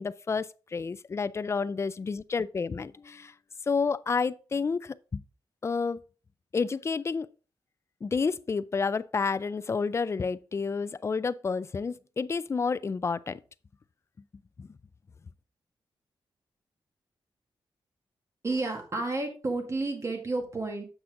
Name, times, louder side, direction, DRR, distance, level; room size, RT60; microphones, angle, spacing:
voice 1, 0.0-3.3 3.7-5.2 5.6-6.0 6.5-7.3 8.0-13.4 14.6-14.7, left 5 dB, 30° left, 0.3 m, -30 dB
voice 2, 18.4-20.8, right 2 dB, 30° right, 1.9 m, -31 dB
7.9 x 5.9 x 3.7 m
wide cardioid pair, 140°, 9 cm